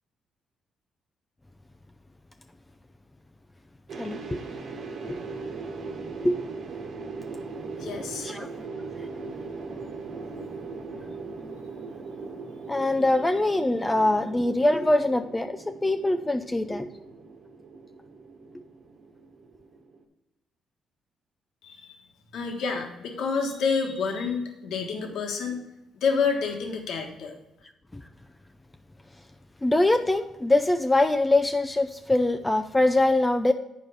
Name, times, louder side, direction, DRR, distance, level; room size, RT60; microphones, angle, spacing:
sound 1, 3.9-20.0, right 4 dB, 65° right, 1.3 m, -39 dB
voice 1, 4.0-4.4 5.1-5.2 6.2-6.4 8.2-8.5 12.7-16.9 29.6-33.5, left 2 dB, 15° left, 6 dB, 0.4 m, -23 dB
voice 2, 7.8-8.3 21.6-22.0 22.3-25.6 25.9-27.3, left 5 dB, 80° left, 2 dB, 1.4 m, -28 dB
9.1 x 4.8 x 5.4 m, 0.94 s
cardioid pair, 90°, 0 cm